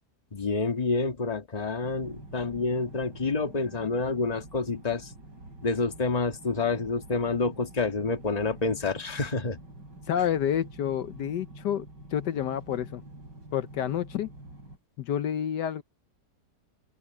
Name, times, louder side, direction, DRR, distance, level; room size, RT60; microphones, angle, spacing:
voice 1, 0.3-5.1 5.6-9.6, left 3 dB, 25° left, 1.6 m, -28 dB
sound 1, 1.8-14.8, right 2 dB, 85° right, 7.0 m, -47 dB
voice 2, 10.1-13.0 13.5-14.3 15.0-15.8, left 9 dB, 75° left, 1.4 m, -29 dB
open air
omnidirectional pair, 1.8 m